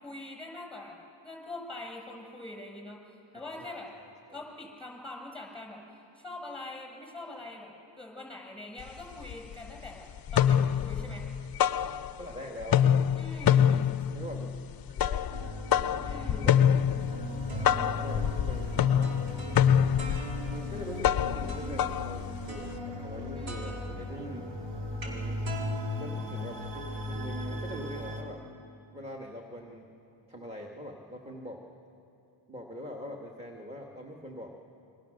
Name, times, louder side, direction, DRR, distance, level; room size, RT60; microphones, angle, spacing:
voice 1, 0.0-3.9 4.3-5.8 6.2-11.3 13.2-13.9 16.0-16.4 23.3-23.8, left 2 dB, ahead, 1 dB, 5.6 m, -44 dB
voice 2, 3.6-4.4 11.8-13.1 14.1-14.6 14.9-15.3 16.3-16.6 17.6-18.9 20.5-24.5 25.0-25.4 26.0-28.4 28.9-29.9 30.3-31.6 32.5-34.5, equal, 15° right, 0 dB, 1.8 m, -43 dB
sound 1, 8.8-8.9 9.2-9.9 10.2-12.4 12.6-22.8, left 9 dB, 55° left, 0.5 m, -26 dB
sound 2, 15.3-28.2, left 1 dB, 65° right, 3.5 m, -38 dB
sound 3, 17.2-20.8 21.5-21.9 22.5-23.2 23.5-27.0, left 2 dB, 90° right, 4.3 m, -40 dB
28.0 x 23.0 x 6.6 m, 2.7 s
wide cardioid pair, 110°, 45 cm